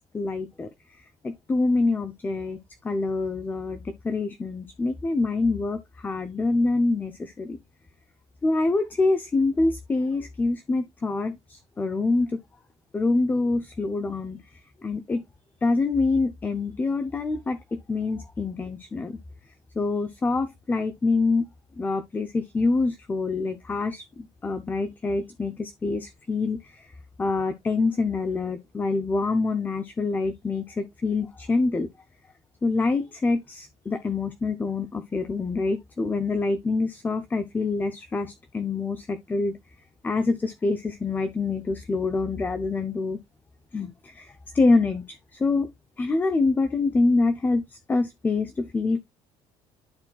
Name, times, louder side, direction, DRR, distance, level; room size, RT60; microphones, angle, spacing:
voice 1, 0.1-0.7 1.2-2.6 2.8-7.6 8.4-12.4 12.9-14.4 14.8-15.2 15.6-19.2 19.8-21.5 21.8-26.8 27.2-31.9 32.6-39.6 40.0-43.2 43.7-45.7 46.0-47.6 47.9-49.0, left 3 dB, 15° left, 0.5 m, -26 dB
12.0 x 4.2 x 2.2 m
cardioid pair, 165°, 12 cm